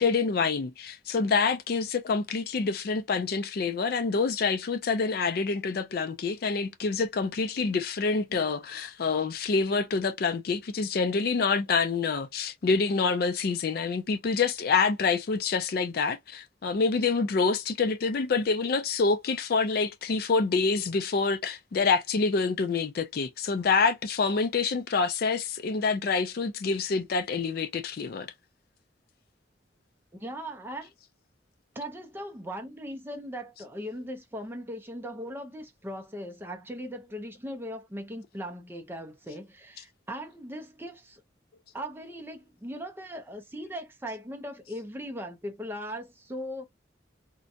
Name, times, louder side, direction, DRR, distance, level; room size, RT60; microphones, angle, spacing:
voice 1, 0.0-28.3, left 4 dB, 50° left, 0.4 m, -27 dB
voice 2, 30.2-30.9 31.7-41.2 41.7-46.7, equal, 10° right, 0.5 m, -39 dB
2.5 x 2.2 x 2.6 m
head